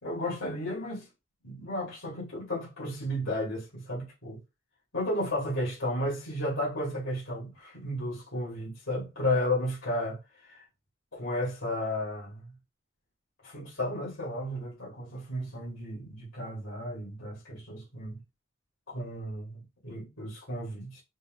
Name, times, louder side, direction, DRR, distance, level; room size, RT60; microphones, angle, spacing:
voice 1, 0.0-1.1 1.4-4.4 4.9-10.6 11.1-12.5 13.4-18.2 18.9-21.0, left 1 dB, 85° left, 2.8 m, -33 dB
5.3 x 2.2 x 3.8 m
head